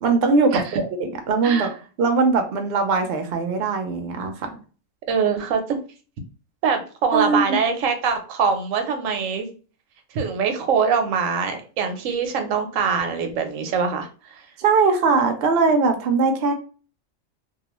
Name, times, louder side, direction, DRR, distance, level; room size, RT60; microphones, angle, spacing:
voice 1, 0.0-1.7 2.0-4.5 7.1-7.6 14.6-16.5, right 4 dB, 65° right, 5 dB, 0.7 m, -20 dB
voice 2, 5.1-5.8 6.6-9.5 10.1-14.4, right 6 dB, 85° right, 6 dB, 1.0 m, -23 dB
2.3 x 2.3 x 2.9 m, 0.37 s
omnidirectional pair, 1.3 m